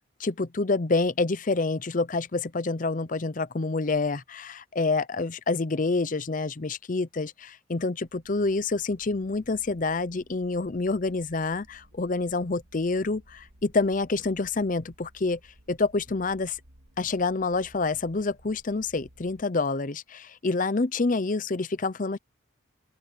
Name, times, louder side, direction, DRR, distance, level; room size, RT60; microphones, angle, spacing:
voice 1, 0.2-15.4 15.7-16.6 17.0-22.2, left 3 dB, 40° left, 0.6 m, -27 dB
sound 1, 8.0-19.4, right 1 dB, 80° right, 2.0 m, -57 dB
open air
head